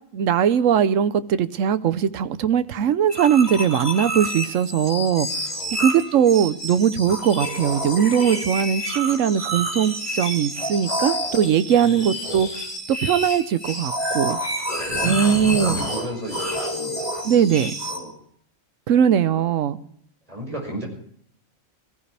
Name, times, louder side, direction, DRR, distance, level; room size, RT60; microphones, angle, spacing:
voice 1, 0.1-5.3 5.8-12.5 12.9-14.4 15.0-15.8 17.2-17.7 18.9-19.8, right 8 dB, 70° right, 1.1 m, -20 dB
sound 1, 3.1-18.0, equal, 30° left, 3.8 m, -28 dB
voice 2, 11.8-12.1 14.9-18.1 19.2-19.4 20.3-20.9, right 1 dB, 25° right, 5.8 m, -36 dB
21.0 x 15.0 x 3.3 m
omnidirectional pair, 1.4 m